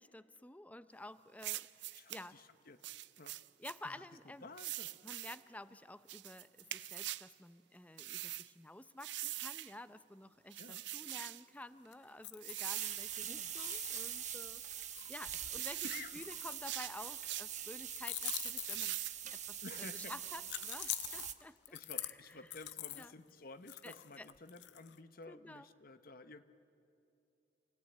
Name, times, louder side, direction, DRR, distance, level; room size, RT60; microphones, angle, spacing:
voice 1, 0.0-2.4 3.6-4.5 5.0-22.4 22.9-23.1 23.8-24.3 25.3-25.7, left 1 dB, 10° left, 13 dB, 0.5 m, -52 dB
sound 1, 1.4-2.2 2.8-3.8 4.6-5.4 6.1-7.3 8.0-8.5 9.0-9.7 10.5-11.4 12.4-13.2 13.7-14.2 14.8-16.1 16.5-17.5 18.2-19.2 19.7-20.4, right 15 dB, 90° right, 0.5 m, -44 dB
voice 2, 1.9-2.8 3.2-3.3 3.8-4.0 4.4-5.0 10.6-10.8 13.2-13.5 15.6-16.2 19.6-20.1 21.7-26.4, left 3 dB, 55° left, 10 dB, 1.0 m, -52 dB
sound 2, 11.9-13.2 13.5-17.0 17.9-19.3 20.5-23.1 23.7-25.0, left 14 dB, 85° left, 0.6 m, -45 dB
sound 3, 12.6-21.3, right 10 dB, 45° right, 1.0 m, -44 dB
28.0 x 18.5 x 8.9 m, 2.7 s
head